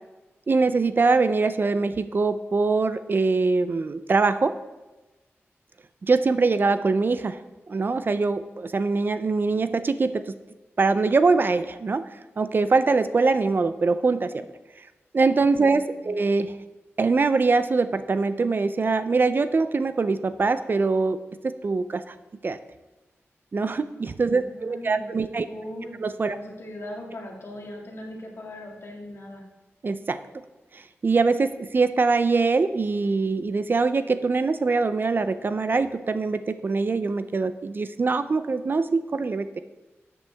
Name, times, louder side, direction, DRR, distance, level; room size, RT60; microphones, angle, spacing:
voice 1, 0.5-4.5 6.0-7.4 7.7-10.3 10.8-12.1 12.4-14.5 15.1-16.5 17.0-22.1 22.4-22.6 23.5-25.5 26.0-26.4 29.8-30.2 30.7-39.6, right 4 dB, 45° right, 12 dB, 0.5 m, -23 dB
voice 2, 15.6-16.2 24.3-25.1 25.5-26.0 26.3-29.4, left 1 dB, 60° left, 0 dB, 2.0 m, -39 dB
13.0 x 8.3 x 3.5 m, 1.1 s
wide cardioid pair, 120°, 5 cm